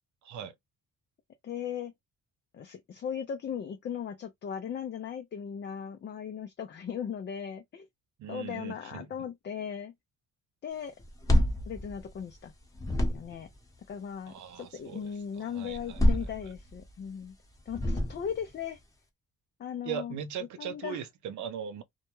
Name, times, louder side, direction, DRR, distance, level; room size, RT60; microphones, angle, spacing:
voice 1, 0.2-0.5 8.2-9.1 14.3-15.1 15.4-16.0 19.8-21.8, right 8 dB, 70° right, 0.6 m, -39 dB
voice 2, 1.4-1.9 2.5-7.9 8.3-9.9 10.6-10.9 11.7-12.5 12.9-13.5 13.9-17.4 17.7-18.8 19.6-20.2 20.6-21.0, left 8 dB, 35° left, 0.4 m, -38 dB
sound 1, 11.0-12.5 12.7-13.5 15.7-16.9 17.7-18.5, equal, 10° left, 0.9 m, -27 dB
2.3 x 2.1 x 2.9 m
cardioid pair, 90°, 30 cm